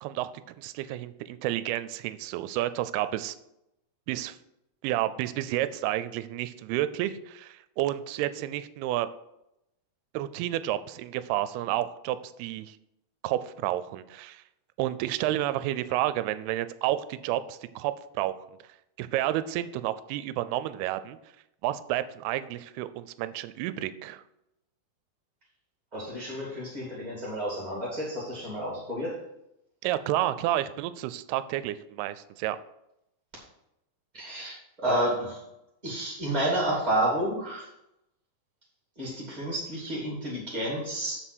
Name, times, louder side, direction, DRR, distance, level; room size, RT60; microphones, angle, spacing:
voice 1, 0.0-3.4 4.1-4.4 4.8-9.1 10.1-12.8 13.2-14.4 14.8-18.3 19.0-21.2 21.6-24.2 29.8-32.6, right 14 dB, 80° right, 14 dB, 2.4 m, -30 dB
voice 2, 25.9-29.2 34.1-35.4 35.8-37.7 38.9-41.2, right 1 dB, 15° right, -5 dB, 1.3 m, -30 dB
8.0 x 6.1 x 6.1 m, 0.85 s
omnidirectional pair, 4.7 m